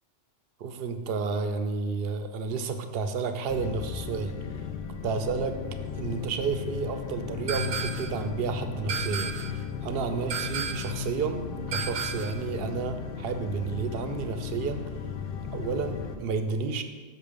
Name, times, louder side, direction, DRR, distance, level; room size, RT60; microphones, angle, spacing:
voice 1, 0.6-4.4 5.0-5.6 6.0-9.4 9.8-14.8 15.5-16.8, right 5 dB, 60° right, 8 dB, 0.8 m, -31 dB
sound 1, 3.5-16.2, left 6 dB, 55° left, 0.7 m, -35 dB
sound 2, 7.5-8.2 8.9-9.6 10.3-11.0 11.7-12.4, right 6 dB, 80° right, 1.0 m, -33 dB
6.7 x 6.2 x 5.1 m, 1.4 s
omnidirectional pair, 1.3 m